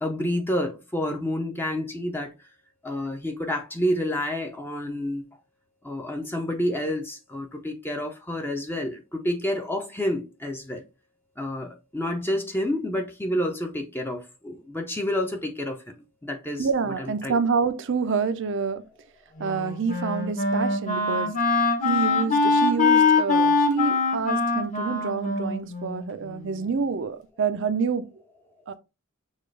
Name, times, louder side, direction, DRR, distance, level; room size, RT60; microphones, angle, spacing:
voice 1, 0.0-2.3 2.8-5.2 5.8-10.8 11.4-15.8 16.2-16.7 17.0-17.4, left 1 dB, 10° left, 0.6 m, -29 dB
voice 2, 16.6-18.8 19.4-21.4 21.8-28.1 28.7-28.8, right 5 dB, 60° right, 0.5 m, -27 dB
Wind instrument woodwind instrument, 19.4-26.6, left 4 dB, 35° left, 1.1 m, -23 dB
6.3 x 2.4 x 3.2 m
head